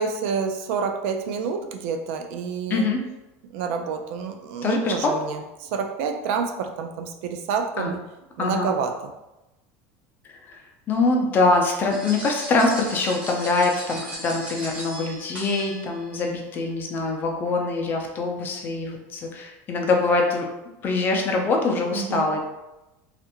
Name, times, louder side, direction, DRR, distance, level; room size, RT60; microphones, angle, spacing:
voice 1, 0.0-2.9 3.5-8.0 8.4-9.1 21.9-22.3, right 6 dB, 70° right, 5 dB, 0.4 m, -28 dB
voice 2, 2.7-3.0 4.6-5.2 7.8-7.9 8.4-8.7 10.3-10.6 10.9-20.5 20.8-22.4, left 3 dB, 25° left, 1 dB, 0.5 m, -24 dB
sound 1, 11.9-16.2, equal, 15° right, 1.1 m, -37 dB
3.2 x 2.5 x 2.9 m, 0.98 s
cardioid pair, 155°, 7 cm